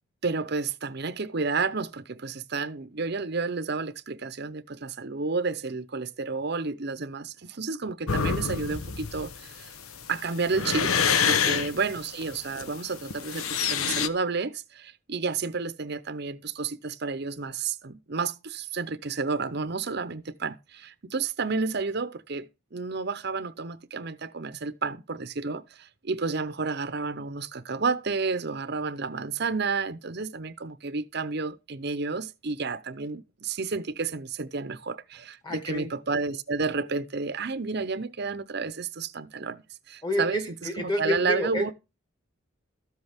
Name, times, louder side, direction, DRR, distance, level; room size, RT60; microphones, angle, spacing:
voice 1, 0.2-9.7 10.1-10.9 11.2-40.5 40.8-41.7, right 4 dB, 50° right, 0.7 m, -31 dB
sound 1, 8.1-14.1, left 6 dB, 85° left, 1.0 m, -27 dB
voice 2, 35.4-35.9 40.0-41.7, left 1 dB, 20° left, 1.6 m, -29 dB
13.5 x 8.1 x 3.5 m
head